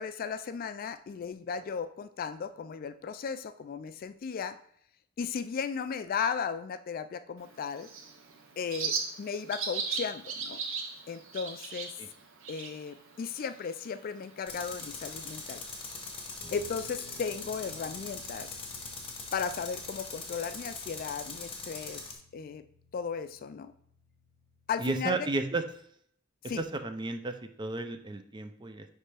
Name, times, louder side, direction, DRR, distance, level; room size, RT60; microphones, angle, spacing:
voice 1, 0.0-4.6 5.2-7.9 8.6-10.6 11.1-11.9 12.5-15.6 16.5-18.5 19.3-22.0 22.3-22.6 22.9-23.7 24.7-25.2 26.5-26.6, left 6 dB, 45° left, 11 dB, 0.3 m, -35 dB
Bird, 7.4-16.4, right 5 dB, 80° right, 0.9 m, -39 dB
Tools, 14.5-22.2, left 4 dB, 25° left, 1.1 m, -42 dB
Guitar, 16.4-25.7, equal, ahead, 2.7 m, -57 dB
voice 2, 24.8-25.6 26.6-28.9, right 2 dB, 25° right, 8 dB, 0.5 m, -33 dB
9.6 x 3.3 x 3.4 m, 0.66 s
head